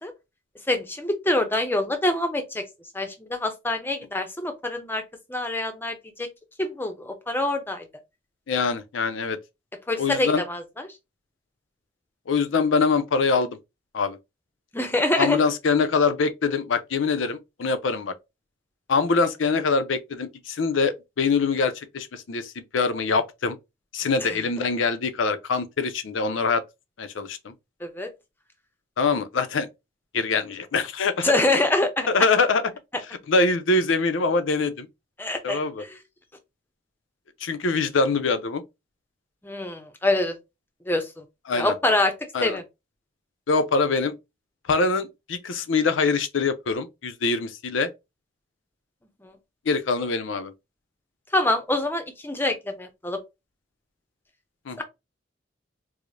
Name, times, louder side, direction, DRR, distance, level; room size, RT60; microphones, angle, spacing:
voice 1, 0.7-2.6 2.9-5.0 5.3-6.3 6.6-7.8 9.9-10.6 14.7-15.4 24.2-24.3 27.8-28.1 31.2-32.1 35.2-35.9 39.4-40.4 40.9-41.2 41.5-42.1 42.4-42.6 49.2-49.3 51.3-53.2 54.8-54.9, left 2 dB, 10° left, 0.6 m, -25 dB
voice 2, 8.5-9.4 10.0-10.4 12.3-13.6 13.9-14.2 15.2-18.1 18.9-23.6 23.9-26.6 27.0-27.5 29.0-29.7 30.1-31.3 32.1-32.6 33.3-34.9 35.4-35.8 37.4-38.6 41.5-41.7 42.3-42.6 43.5-44.1 44.7-47.9 49.7-50.5 54.7-54.8, left 4 dB, 85° left, 0.5 m, -24 dB
4.8 x 2.0 x 2.5 m
head